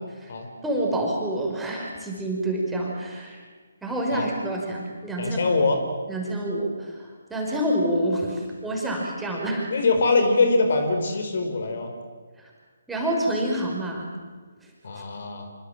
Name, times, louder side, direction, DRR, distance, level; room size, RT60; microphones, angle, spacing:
voice 1, 0.6-3.4 3.8-5.4 6.1-9.7 12.4-12.5 12.9-14.1, right 1 dB, 5° right, -3 dB, 5.7 m, -27 dB
voice 2, 5.2-5.8 9.7-11.9 14.8-15.5, left 3 dB, 55° left, 5 dB, 5.1 m, -23 dB
27.0 x 25.0 x 7.7 m, 1.4 s
figure-of-eight pair, 145°, 0 cm